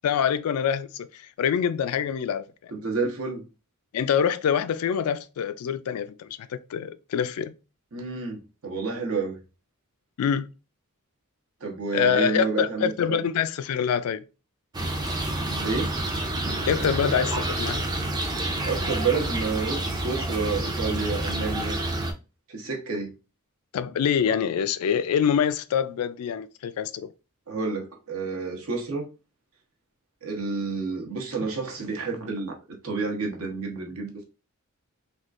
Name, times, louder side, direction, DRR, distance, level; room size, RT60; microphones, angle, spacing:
voice 1, 0.0-2.7 3.9-7.5 10.2-10.5 11.9-14.2 16.6-17.8 23.7-27.1, left 8 dB, 80° left, 0.3 m, -25 dB
voice 2, 2.7-3.4 7.9-9.4 11.6-13.2 15.6-15.9 18.7-21.8 22.5-23.1 27.5-29.1 30.2-32.6 32.8-34.2, right 4 dB, 70° right, 0.9 m, -29 dB
sound 1, 14.7-22.1, right 1 dB, 20° right, 0.4 m, -28 dB
3.5 x 2.4 x 2.4 m
head